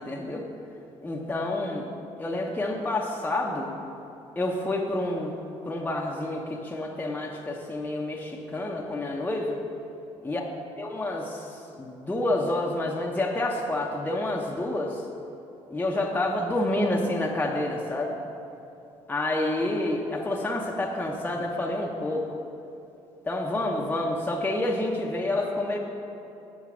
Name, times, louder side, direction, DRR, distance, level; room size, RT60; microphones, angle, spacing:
voice 1, 0.1-0.5 1.0-1.9 2.2-3.7 4.4-5.4 5.7-9.6 10.2-10.4 10.8-15.0 15.7-18.1 19.1-22.3 23.3-25.8, left 1 dB, 15° left, -1 dB, 0.8 m, -28 dB
7.5 x 4.6 x 6.1 m, 2.8 s
supercardioid pair, 70°, 13 cm